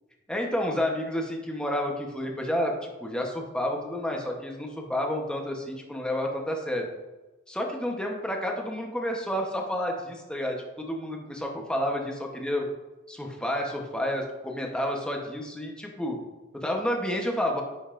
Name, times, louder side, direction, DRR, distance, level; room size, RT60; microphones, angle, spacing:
voice 1, 0.3-6.9 7.5-12.6 13.1-16.2 16.5-17.6, left 1 dB, 5° left, 1 dB, 0.9 m, -30 dB
9.9 x 5.4 x 2.5 m, 1.1 s
head